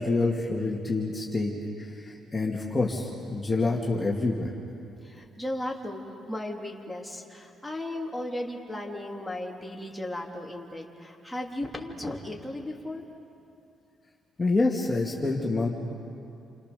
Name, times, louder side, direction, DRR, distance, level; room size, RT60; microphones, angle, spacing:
voice 1, 0.0-1.5 1.8-4.5 14.4-15.7, left 3 dB, 20° left, -2 dB, 2.8 m, -27 dB
voice 2, 5.0-13.0, left 1 dB, 5° left, -2 dB, 3.5 m, -36 dB
29.5 x 27.0 x 7.0 m, 2.7 s
cardioid pair, 90°, 0 cm